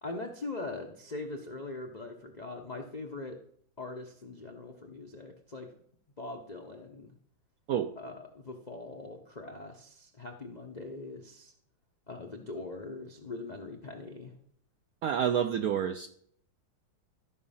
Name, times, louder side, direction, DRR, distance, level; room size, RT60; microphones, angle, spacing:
voice 1, 0.0-3.4 3.8-5.7 6.2-7.1 8.0-11.5 12.1-14.3, left 2 dB, 70° left, 3 dB, 0.4 m, -41 dB
voice 2, 15.0-16.1, right 9 dB, 80° right, 8 dB, 0.8 m, -28 dB
14.0 x 5.1 x 5.6 m, 0.65 s
omnidirectional pair, 2.1 m